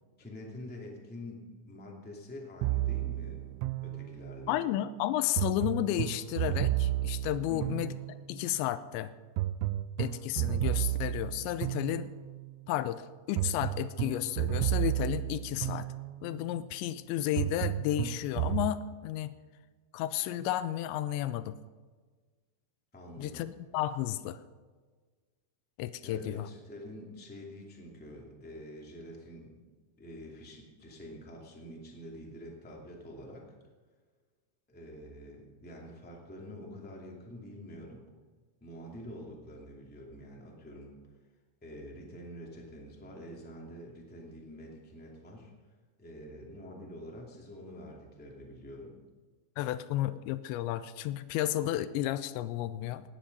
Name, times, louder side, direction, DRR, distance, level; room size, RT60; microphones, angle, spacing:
voice 1, 0.2-3.4 3.8-4.6 7.5-7.8 22.9-23.5 26.0-29.6 30.0-33.4 34.7-38.1 38.6-40.9 41.6-45.5 46.0-48.9, equal, 15° left, -2 dB, 0.4 m, -46 dB
sound 1, 2.6-4.5 5.4-8.4 9.4-12.5 13.4-16.4 17.4-18.7, right 14 dB, 90° right, 3.0 m, -32 dB
voice 2, 4.5-7.9 8.3-9.1 10.0-12.1 12.7-15.9 16.2-19.3 19.9-21.6 23.2-24.4 25.8-26.5 49.6-53.0, left 13 dB, 85° left, 14 dB, 2.7 m, -32 dB
17.5 x 10.5 x 5.4 m, 1.4 s
omnidirectional pair, 5.4 m